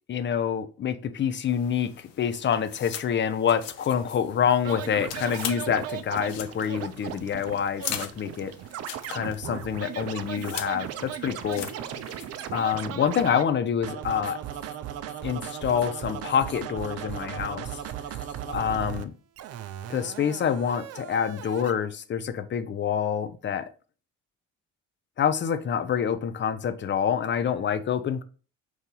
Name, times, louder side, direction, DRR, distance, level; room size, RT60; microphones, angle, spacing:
voice 1, 0.0-8.5 9.1-11.7 12.5-14.4 15.2-17.7 18.5-19.1 19.9-23.6 25.2-28.2, left 8 dB, 30° left, 0.5 m, -27 dB
sound 1, 1.5-12.8, left 10 dB, 75° left, 0.6 m, -41 dB
Scratching (performance technique), 4.6-13.4 13.8-19.0 19.4-21.7, right 10 dB, 40° right, 0.4 m, -37 dB
4.7 x 2.7 x 3.8 m
hypercardioid pair, 55°, 38 cm